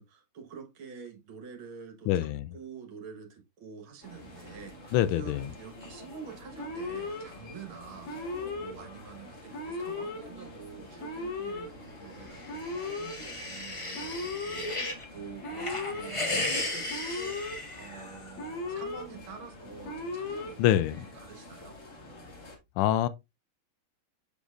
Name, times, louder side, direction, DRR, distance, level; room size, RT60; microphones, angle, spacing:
voice 1, 0.0-20.7 21.0-21.8, right 6 dB, 75° right, 2.3 m, -47 dB
voice 2, 2.1-2.5 4.9-5.4 20.6-21.0 22.8-23.1, left 12 dB, 85° left, 1.5 m, -25 dB
sound 1, 4.0-22.6, left 2 dB, 40° left, 2.1 m, -48 dB
Alarm, 6.6-7.2 8.0-8.7 9.5-10.2 11.0-11.7 12.5-13.1 13.9-14.6 15.4-16.1 16.9-17.6 18.4-19.0 19.8-20.5, left 3 dB, 70° left, 2.2 m, -36 dB
sound 2, 12.3-15.0 15.4-18.3, left 2 dB, 25° left, 0.8 m, -35 dB
6.8 x 6.3 x 2.5 m
omnidirectional pair, 2.3 m